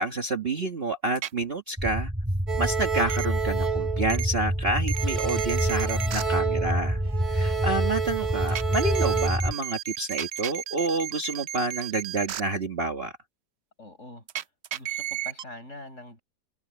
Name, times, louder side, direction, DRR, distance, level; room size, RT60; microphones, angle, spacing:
voice 1, 0.0-2.1 2.6-7.0 7.3-13.1, right 2 dB, 35° right, 1.5 m, -29 dB
sound 1, 1.2-1.3 3.1-3.3 4.1-4.3 4.9-6.2 8.5-12.4 14.3-15.4, right 11 dB, 75° right, 0.6 m, -33 dB
sound 2, 1.8-9.5, equal, 5° right, 1.3 m, -28 dB
sound 3, 2.5-4.6 4.9-9.3, right 7 dB, 55° right, 2.8 m, -30 dB
voice 2, 5.9-6.3 13.8-14.3 14.7-16.2, left 2 dB, 40° left, 6.9 m, -44 dB
omnidirectional pair, 1.9 m